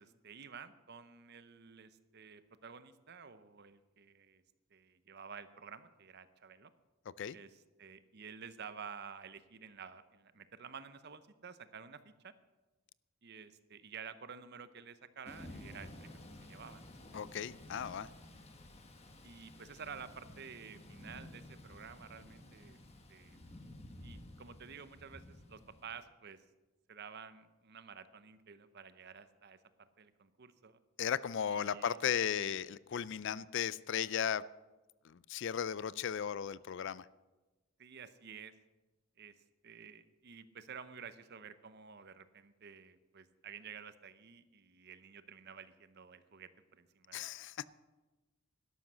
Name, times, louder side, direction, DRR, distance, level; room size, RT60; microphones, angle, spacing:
voice 1, 0.0-4.4 4.7-6.7 7.3-12.3 13.2-16.8 17.1-17.2 19.2-22.8 23.1-23.4 24.0-26.4 26.9-30.8 31.5-32.0 37.8-38.5 39.2-39.3 39.6-47.3, right 6 dB, 50° right, 13 dB, 0.7 m, -51 dB
Thunder / Rain, 15.3-26.0, left 1 dB, 30° left, 1.3 m, -53 dB
voice 2, 17.1-18.1 31.0-34.4 35.0-37.1 47.1-47.6, left 8 dB, 55° left, 19 dB, 0.4 m, -36 dB
12.0 x 11.5 x 6.2 m, 1.1 s
head